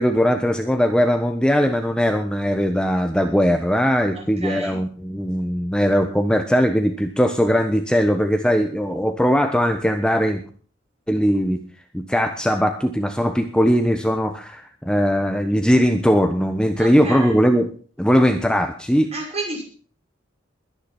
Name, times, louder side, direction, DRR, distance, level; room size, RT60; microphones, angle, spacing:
voice 1, 0.0-10.4 11.1-11.6 11.9-17.7 18.0-19.1, equal, 5° left, 6 dB, 1.2 m, -19 dB
voice 2, 4.1-4.8 16.8-17.4 19.1-19.6, right 2 dB, 35° right, 1 dB, 7.2 m, -31 dB
22.0 x 10.5 x 4.5 m, 0.43 s
head